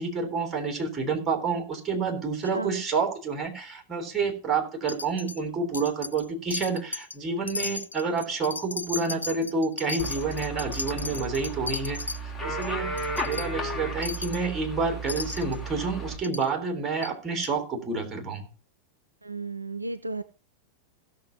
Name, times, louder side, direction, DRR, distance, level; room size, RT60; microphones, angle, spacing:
voice 1, 0.0-18.5, right 4 dB, 20° right, 3 dB, 3.6 m, -29 dB
voice 2, 2.5-2.8 19.2-20.2, right 3 dB, 85° right, 13 dB, 0.6 m, -34 dB
Wind chime, 4.9-5.4 5.7-6.3 6.5-7.2 7.5-12.2 12.6-12.7 13.0-13.5 14.0-14.4 15.1-15.6 16.2-16.5 17.0-17.1 17.4-17.5, left 3 dB, 80° left, 0.5 m, -35 dB
sound 1, 10.0-16.1, right 2 dB, 10° left, 2.7 m, -34 dB
16.5 x 6.7 x 4.1 m, 0.38 s
figure-of-eight pair, 90°, 0 cm